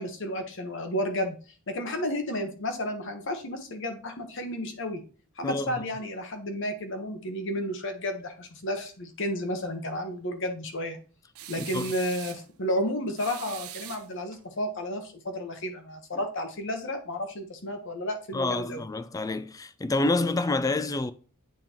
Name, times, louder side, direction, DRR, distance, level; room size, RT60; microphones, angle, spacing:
voice 1, 0.0-1.4 1.7-5.0 5.4-11.0 11.5-18.8, left 1 dB, 60° left, 1.1 m, -32 dB
voice 2, 5.4-5.8 11.6-11.9 18.3-21.1, left 2 dB, 15° left, 0.3 m, -28 dB
sound 1, 11.3-12.5 13.2-14.4, right 14 dB, 85° right, 0.5 m, -42 dB
8.6 x 3.8 x 3.0 m
head